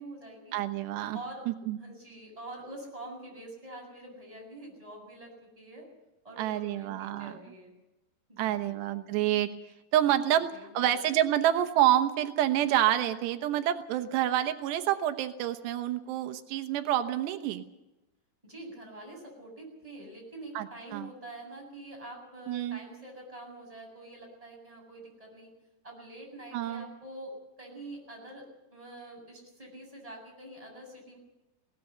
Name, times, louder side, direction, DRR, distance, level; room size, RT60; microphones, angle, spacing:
voice 1, 0.0-0.6 1.1-1.4 1.8-5.9 6.2-7.7 8.3-8.7 10.1-11.0 18.4-25.5 25.8-31.2, right 1 dB, 10° right, 0 dB, 7.2 m, -46 dB
voice 2, 0.5-1.2 1.5-1.8 6.4-7.4 8.4-9.5 9.9-17.6 20.6-20.7 20.9-21.1 22.5-22.8 26.5-26.9, right 12 dB, 90° right, 8 dB, 3.2 m, -28 dB
21.5 x 18.0 x 6.9 m, 0.98 s
omnidirectional pair, 4.8 m